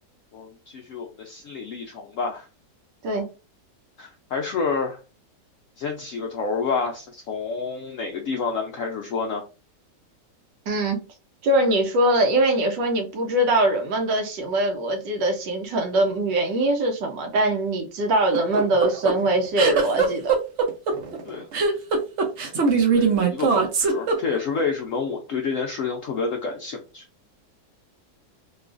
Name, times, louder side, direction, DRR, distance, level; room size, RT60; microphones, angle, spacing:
voice 1, 0.3-2.4 4.0-5.0 5.8-9.4 21.3-21.5 22.6-27.0, left 5 dB, 80° left, 0.7 m, -29 dB
voice 2, 10.7-11.0 11.4-20.3, right 1 dB, 80° right, 1.4 m, -22 dB
sound 1, 18.3-24.6, right 5 dB, 60° right, 0.7 m, -21 dB
3.7 x 2.4 x 2.4 m
omnidirectional pair, 1.9 m